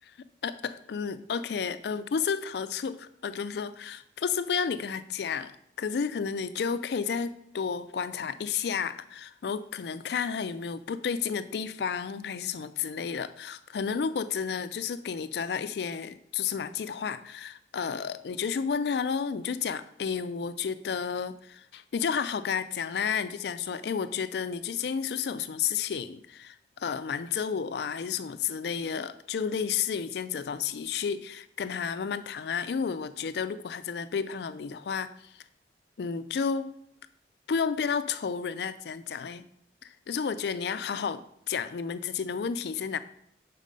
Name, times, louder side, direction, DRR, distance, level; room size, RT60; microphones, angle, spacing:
voice 1, 0.4-5.5 5.8-35.3 36.0-36.7 37.5-39.4 39.8-43.0, left 6 dB, 65° left, 13 dB, 0.4 m, -31 dB
6.6 x 4.1 x 5.2 m, 0.73 s
head